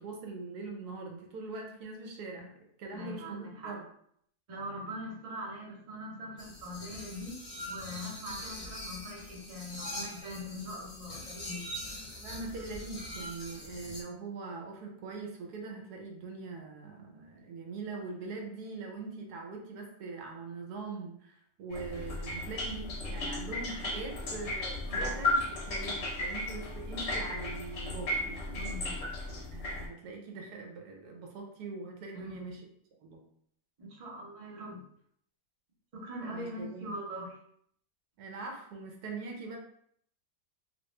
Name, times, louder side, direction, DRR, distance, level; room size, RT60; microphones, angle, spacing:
voice 1, 0.0-2.5 2.8-3.8 12.2-28.8 29.5-32.6 33.0-33.2 36.3-37.0 38.2-39.6, right 3 dB, 80° right, 2 dB, 1.2 m, -42 dB
voice 2, 2.9-3.8 4.5-7.4 7.7-11.7 24.9-25.1 28.5-29.0 32.1-32.6 33.8-34.8 35.9-37.4, equal, 35° right, -3 dB, 0.6 m, -42 dB
sound 1, 6.4-14.0, left 1 dB, 30° left, 0.8 m, -43 dB
sound 2, 21.7-29.9, left 2 dB, 60° left, 0.8 m, -35 dB
3.0 x 2.5 x 3.1 m, 0.67 s
omnidirectional pair, 1.7 m